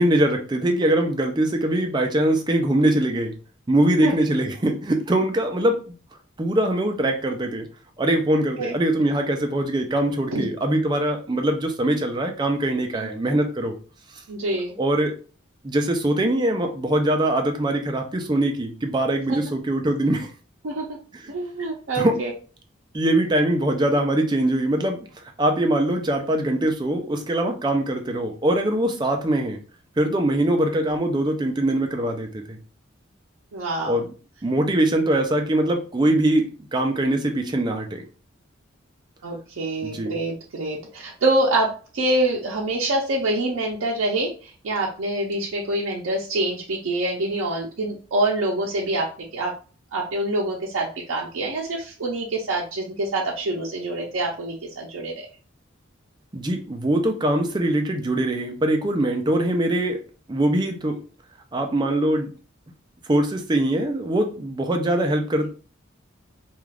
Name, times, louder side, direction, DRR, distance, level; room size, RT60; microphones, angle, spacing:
voice 1, 0.0-3.3 3.7-5.9 6.4-7.7 8.0-13.8 14.8-15.1 15.6-20.3 21.2-21.3 21.9-22.2 22.9-25.1 25.4-29.6 30.0-32.6 33.8-34.1 34.4-38.0 39.8-40.1 56.3-60.0 60.3-61.0 61.5-62.3 63.1-65.5, right 1 dB, 20° right, 4 dB, 0.4 m, -22 dB
voice 2, 14.3-14.8 19.3-19.4 20.6-20.8 21.3-22.3 33.5-34.0 39.2-49.1 49.3-49.5 49.9-55.3, right 2 dB, 80° right, -2 dB, 0.5 m, -25 dB
2.3 x 2.3 x 3.3 m, 0.37 s
head